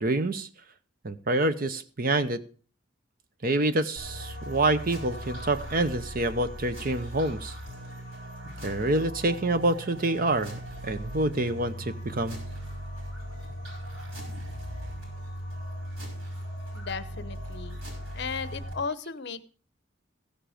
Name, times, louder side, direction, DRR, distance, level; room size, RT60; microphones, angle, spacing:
voice 1, 0.0-0.5 1.0-2.4 3.4-7.5 8.5-12.4, right 2 dB, 45° right, 12 dB, 0.8 m, -27 dB
sound 1, 4.0-18.7, equal, 85° right, 5.7 m, -39 dB
voice 2, 16.7-17.8 18.1-19.4, left 5 dB, 55° left, 15 dB, 0.8 m, -35 dB
15.0 x 7.8 x 4.9 m, 0.40 s
head